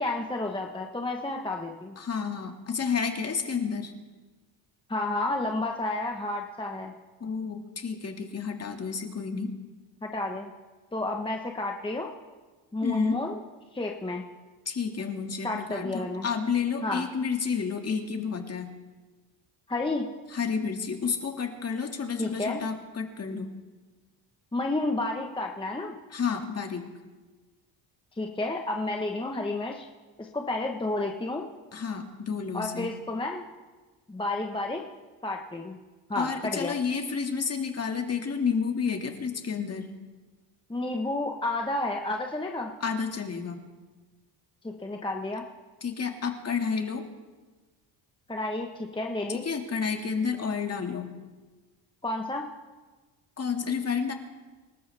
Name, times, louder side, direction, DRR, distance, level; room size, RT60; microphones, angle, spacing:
voice 1, 0.0-2.0 4.9-6.9 10.0-10.5 10.9-12.1 12.7-13.4 13.7-14.2 15.4-16.3 16.8-17.0 19.7-20.1 22.2-22.6 24.5-26.0 28.1-29.9 30.2-31.5 32.5-33.4 34.1-34.9 35.2-35.8 36.1-36.8 40.7-42.7 44.6-45.4 48.3-49.5 52.0-52.5, left 2 dB, 10° left, 1 dB, 1.2 m, -31 dB
voice 2, 2.0-3.9 7.2-9.6 12.8-13.2 14.7-18.7 20.3-23.5 26.1-26.9 31.7-32.9 36.2-39.9 42.8-43.6 45.8-47.1 49.3-51.1 53.4-54.1, left 6 dB, 35° left, 4 dB, 2.1 m, -30 dB
26.5 x 13.0 x 3.4 m, 1.3 s
cardioid pair, 100°, 46 cm